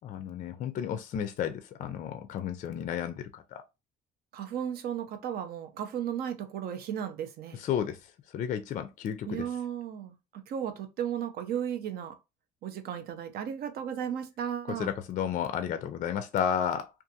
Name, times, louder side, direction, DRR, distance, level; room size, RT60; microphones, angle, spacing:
voice 1, 0.0-3.6 7.6-8.0 8.3-9.4 14.8-16.9, left 9 dB, 50° left, 0.4 m, -32 dB
voice 2, 4.3-7.7 9.3-10.1 10.5-12.1 12.6-14.9, right 9 dB, 65° right, 0.6 m, -35 dB
2.6 x 2.3 x 2.6 m
cardioid pair, 110°, 17 cm